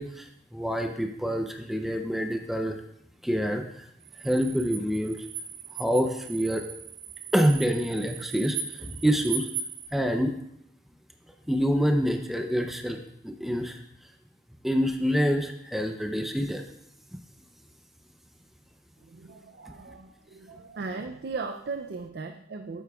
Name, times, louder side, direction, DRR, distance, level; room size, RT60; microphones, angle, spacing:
voice 1, 0.0-2.8 3.2-3.8 4.2-5.3 5.7-6.7 7.3-9.5 9.9-10.3 11.5-13.0 13.2-13.8 14.6-16.6, equal, ahead, 4 dB, 0.5 m, -26 dB
sound 1, 4.0-9.9, right 7 dB, 45° right, 1.0 m, -38 dB
voice 2, 19.0-22.8, right 4 dB, 65° right, 6 dB, 0.4 m, -37 dB
11.5 x 8.2 x 2.3 m, 0.76 s
head